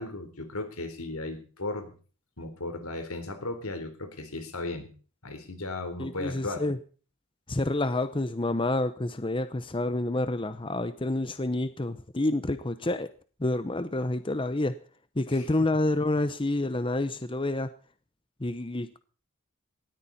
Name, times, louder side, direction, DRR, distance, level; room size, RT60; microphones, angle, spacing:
voice 1, 0.0-1.9 2.4-4.9 5.2-6.7 15.3-15.4, left 2 dB, 85° left, 8 dB, 3.8 m, -36 dB
voice 2, 6.0-6.8 7.5-13.1 13.4-14.8 15.2-17.7 18.4-19.0, left 2 dB, 25° left, 12 dB, 0.8 m, -28 dB
19.0 x 13.5 x 4.2 m, 0.39 s
head